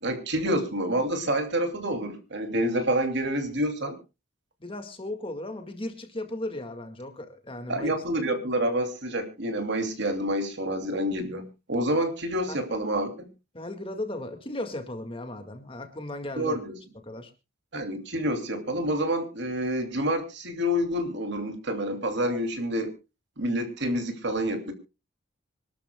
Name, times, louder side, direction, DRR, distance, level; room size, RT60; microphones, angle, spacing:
voice 1, 0.0-4.0 7.7-13.3 16.4-16.7 17.7-22.9 23.4-24.7, equal, 60° right, 6 dB, 2.8 m, -28 dB
voice 2, 4.6-7.9 12.5-12.6 13.5-16.6 17.0-17.3, left 1 dB, 25° left, 6 dB, 1.9 m, -36 dB
26.0 x 12.5 x 2.3 m, 0.28 s
head